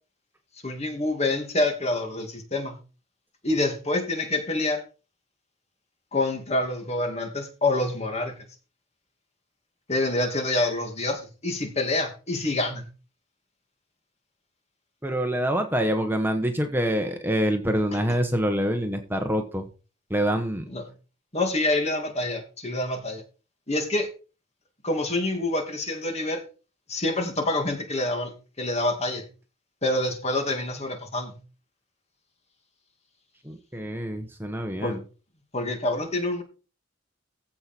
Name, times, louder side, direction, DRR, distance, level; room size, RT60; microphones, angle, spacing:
voice 1, 0.6-2.8 3.4-4.8 6.1-8.4 9.9-12.9 20.7-20.8 21.3-23.2 23.7-24.1 24.8-26.4 26.9-29.2 29.8-31.4 34.8-35.0 35.5-36.4, left 2 dB, 35° left, 4 dB, 2.6 m, -27 dB
voice 2, 15.0-19.6 20.1-20.6 33.4-35.0, equal, 10° right, 5 dB, 1.2 m, -26 dB
15.5 x 5.7 x 4.5 m, 0.34 s
head